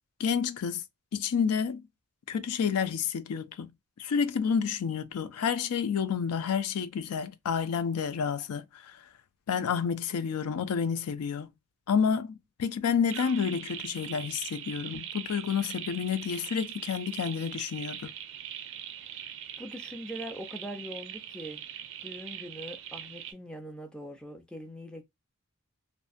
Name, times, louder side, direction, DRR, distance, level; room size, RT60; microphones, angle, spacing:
voice 1, 0.2-0.8 1.1-1.8 2.3-3.7 4.0-8.9 9.5-11.5 11.9-18.1, left 6 dB, 85° left, 0.4 m, -29 dB
sound 1, 13.1-23.3, right 10 dB, 55° right, 0.4 m, -41 dB
voice 2, 19.6-21.6 22.0-25.0, equal, 5° left, 0.4 m, -42 dB
2.5 x 2.1 x 2.4 m
head